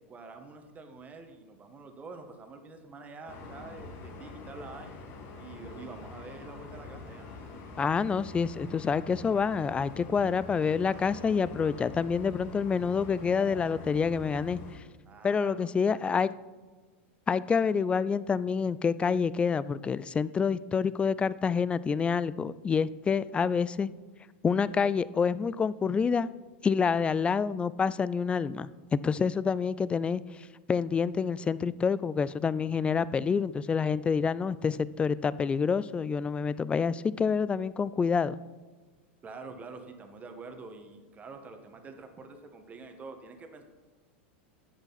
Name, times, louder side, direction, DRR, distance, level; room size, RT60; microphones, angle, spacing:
voice 1, 0.1-5.0 5.4-7.2 15.0-16.3 39.2-43.6, right 3 dB, 25° right, 5 dB, 1.4 m, -46 dB
sound 1, 3.3-14.8, left 3 dB, 45° left, 2.0 m, -45 dB
voice 2, 7.8-14.6 15.2-16.3 17.3-23.9 24.4-26.3 26.6-38.4, left 6 dB, 15° left, 18 dB, 0.3 m, -27 dB
11.0 x 8.0 x 4.1 m, 1.3 s
hypercardioid pair, 120°, 7 cm